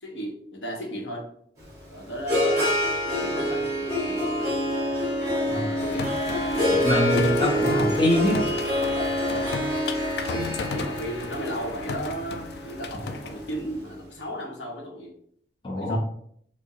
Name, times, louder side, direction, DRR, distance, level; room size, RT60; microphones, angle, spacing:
voice 1, 0.0-1.2 1.9-2.7 3.0-4.5 5.2-6.1 6.4-6.8 10.3-15.1 15.7-16.0, equal, 80° left, 0 dB, 0.8 m, -35 dB
Harp, 1.6-13.8, left 1 dB, 15° right, 1.3 m, -27 dB
sound 1, 4.7-10.2, equal, 75° right, 0.3 m, -38 dB
sound 2, 5.8-13.6, left 4 dB, 60° left, 0.3 m, -35 dB
voice 2, 6.7-8.4 15.6-16.0, equal, 25° left, -2 dB, 0.6 m, -24 dB
4.5 x 2.0 x 3.0 m, 0.66 s
head